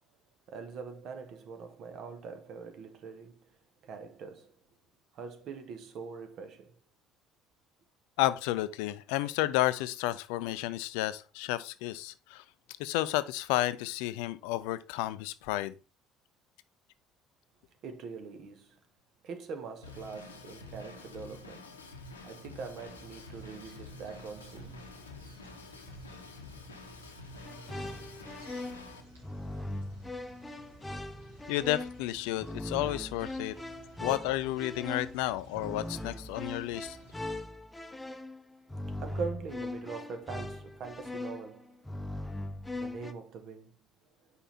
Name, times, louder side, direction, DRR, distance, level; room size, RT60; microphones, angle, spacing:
voice 1, 0.5-3.6 3.8-4.5 5.1-6.8 17.8-18.8 19.2-21.8 22.2-25.1 39.0-41.9 42.7-43.7, right 5 dB, 50° right, 1.1 m, -43 dB
voice 2, 8.2-12.4 12.8-15.7 31.5-33.5 34.0-37.0, left 15 dB, 65° left, 0.4 m, -31 dB
Drum kit / Drum, 19.8-29.0, left 3 dB, 85° left, 0.8 m, -48 dB
sound 1, 22.8-37.4, right 2 dB, 85° right, 2.2 m, -54 dB
sound 2, 27.4-43.1, left 1 dB, 10° left, 0.7 m, -40 dB
5.5 x 4.5 x 4.2 m
figure-of-eight pair, 55°, 0 cm